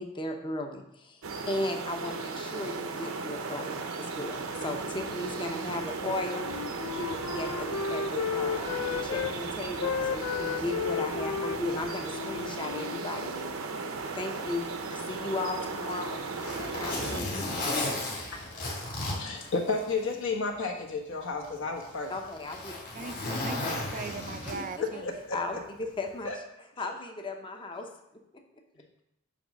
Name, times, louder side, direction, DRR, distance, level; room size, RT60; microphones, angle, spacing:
voice 1, 0.0-6.5 7.0-13.7 14.1-17.3 22.1-22.7 24.9-25.0 25.3-26.3 26.8-27.9, left 2 dB, 25° left, 4 dB, 0.8 m, -36 dB
sound 1, 1.2-17.2, right 4 dB, 75° right, 0.8 m, -36 dB
Wind instrument woodwind instrument, 6.0-9.3 9.7-13.6, left 7 dB, 80° left, 0.4 m, -34 dB
Zipper (clothing), 15.7-20.2 20.6-20.7 21.4-24.9 26.1-26.3, left 2 dB, 40° left, 2.7 m, -35 dB
voice 2, 19.2-22.1 24.5-25.4 26.2-26.4, left 3 dB, 65° left, 2 dB, 1.3 m, -32 dB
voice 3, 22.9-25.1, right 4 dB, 40° right, 9 dB, 0.4 m, -40 dB
8.6 x 3.2 x 6.3 m, 0.83 s
head